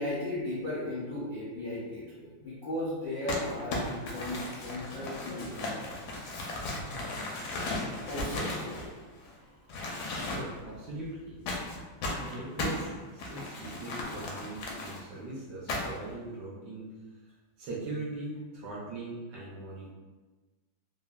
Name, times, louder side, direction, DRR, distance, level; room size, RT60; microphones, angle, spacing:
voice 1, 0.0-5.8 8.1-8.8 9.7-10.2, left 1 dB, 50° left, -12 dB, 0.6 m, -36 dB
Crumpling crinkling, 3.3-9.3 9.7-10.7 11.5-15.0 15.7-16.1, left 2 dB, 75° left, 0.9 m, -36 dB
voice 2, 10.2-11.4 12.2-16.9 17.6-19.9, right 2 dB, 70° right, -6 dB, 1.1 m, -40 dB
3.4 x 2.1 x 2.2 m, 1.3 s
omnidirectional pair, 2.2 m